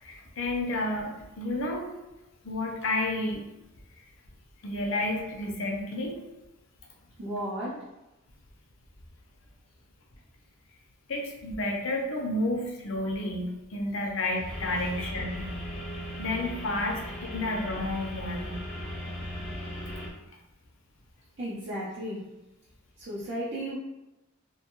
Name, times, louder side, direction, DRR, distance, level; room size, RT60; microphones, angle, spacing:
voice 1, 0.0-1.9 2.4-3.4 4.6-6.1 11.1-15.5 16.2-18.6, left 2 dB, 70° left, 0 dB, 0.6 m, -31 dB
voice 2, 7.2-7.8 21.4-22.2 23.0-23.8, right 1 dB, 55° right, -8 dB, 0.6 m, -34 dB
sound 1, 14.5-20.1, equal, ahead, 0.5 m, -37 dB
2.6 x 2.2 x 2.9 m, 0.99 s
head